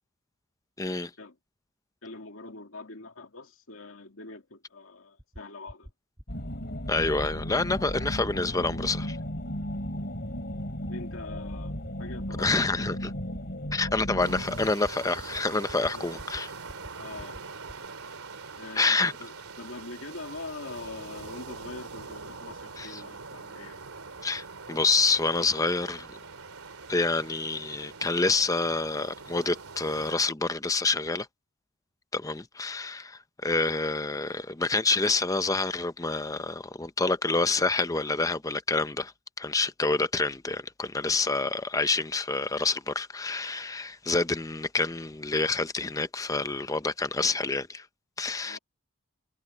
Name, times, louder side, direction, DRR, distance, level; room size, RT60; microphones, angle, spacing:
voice 1, 0.8-1.1 6.9-9.2 12.4-13.1 13.7-16.5 18.8-19.1 22.8-23.0 24.2-26.2 26.9-31.3 32.1-39.1 39.4-47.9 48.2-48.6, left 3 dB, 15° left, 0.7 m, -27 dB
voice 2, 2.0-5.9 10.0-10.1 10.9-12.8 15.9-16.1 17.0-17.4 18.6-23.8 48.4-48.6, left 3 dB, 65° left, 2.6 m, -43 dB
sound 1, 5.2-5.4 5.7-5.9 6.2-6.4 6.7-6.9 7.2-7.4 7.7-7.9 8.2-8.4 8.7-8.9 9.2-9.4 9.7-9.9 10.2-10.4 10.7-10.9 11.2-11.4 11.7-11.9 12.2-12.4 12.7-12.9 13.2-13.4 13.7-13.9 14.2-14.4 14.7-14.9 15.2-15.4 15.7-15.9 16.2-16.4 16.7-16.9 17.2-17.4 17.7-17.9, equal, 15° right, 1.5 m, -44 dB
sound 2, 6.3-14.7, equal, 50° left, 4.0 m, -35 dB
sound 3, 14.2-30.1, right 4 dB, 90° right, 3.0 m, -43 dB
head